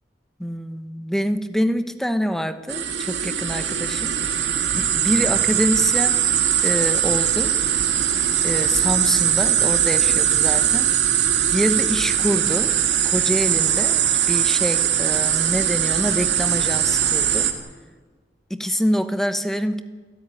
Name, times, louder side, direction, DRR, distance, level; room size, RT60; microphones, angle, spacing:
voice 1, 0.4-4.2 4.7-6.2 6.6-7.5 8.4-11.0 11.5-12.8 13.0-17.5 18.5-19.8, equal, ahead, 9 dB, 1.0 m, -25 dB
sound 1, 2.7-17.5, right 9 dB, 80° right, 2.1 m, -20 dB
28.0 x 13.0 x 9.8 m, 1.4 s
head